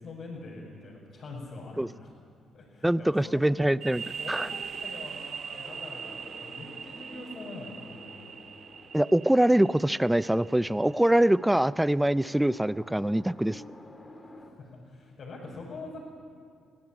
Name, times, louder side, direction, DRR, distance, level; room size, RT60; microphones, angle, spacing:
voice 1, 0.0-2.1 2.5-3.5 4.0-8.3 14.2-16.0, left 3 dB, 55° left, -6 dB, 5.9 m, -44 dB
voice 2, 2.8-4.0 4.3-4.5 8.9-13.6, right 1 dB, 5° right, 17 dB, 0.4 m, -24 dB
sound 1, 3.8-11.3, right 7 dB, 55° right, 1.0 m, -41 dB
sound 2, 5.6-14.5, left 1 dB, 20° left, 3.2 m, -50 dB
24.0 x 17.0 x 8.9 m, 2.4 s
cardioid pair, 90°, 0 cm